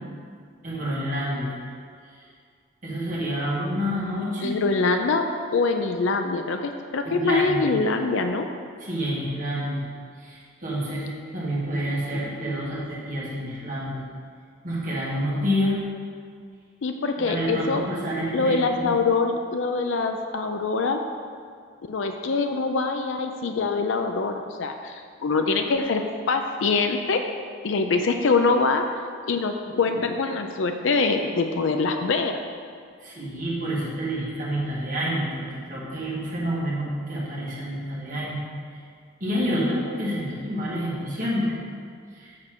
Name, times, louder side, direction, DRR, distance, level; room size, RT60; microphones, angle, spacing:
voice 1, 0.6-1.6 2.8-4.5 7.1-7.7 8.8-9.9 10.2-14.0 14.6-15.8 17.2-18.9 33.0-38.4 38.7-38.8 39.2-41.6 42.1-42.3, equal, 40° right, -6 dB, 1.9 m, -28 dB
voice 2, 4.4-5.2 5.5-8.5 16.8-17.8 18.3-21.0 21.9-27.2 27.6-28.9 29.3-32.4, left 4 dB, 70° left, 5 dB, 0.5 m, -24 dB
7.6 x 4.4 x 6.0 m, 2.1 s
head